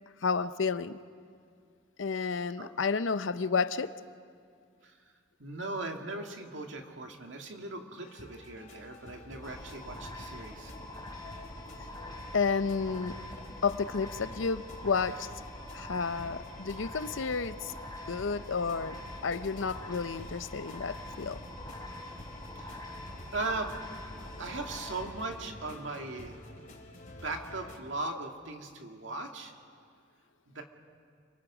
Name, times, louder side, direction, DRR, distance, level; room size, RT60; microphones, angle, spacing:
voice 1, 0.2-1.0 2.0-4.0 12.3-13.2 13.6-15.3 15.7-17.7 18.1-21.4, left 5 dB, 85° left, 0.7 m, -31 dB
voice 2, 5.4-10.7 22.6-22.9 23.3-23.7 24.4-26.4 27.1-29.5 30.5-30.6, right 2 dB, 75° right, 2.0 m, -38 dB
sound 1, 8.0-27.8, left 1 dB, 45° left, 2.6 m, -50 dB
sound 2, 9.4-25.0, left 1 dB, 20° left, 3.7 m, -44 dB
29.5 x 22.5 x 5.0 m
head